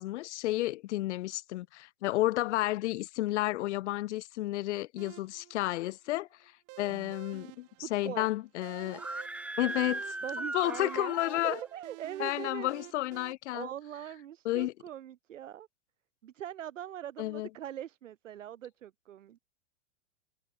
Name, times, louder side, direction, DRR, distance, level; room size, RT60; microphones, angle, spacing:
voice 1, 0.0-6.3 6.8-9.0 9.6-10.2 10.5-11.6 12.2-13.7 14.4-14.7 17.2-17.5, left 17 dB, 65° left, 0.6 m, -31 dB
sound 1, 5.0-13.3, right 24 dB, 40° right, 7.6 m, -51 dB
voice 2, 7.8-8.3 10.2-11.1 11.4-12.7 13.5-15.7 16.2-19.4, right 11 dB, 90° right, 1.4 m, -41 dB
Screaming, 8.9-11.7, right 2 dB, 5° right, 1.2 m, -38 dB
hypercardioid pair, 135°, 37 cm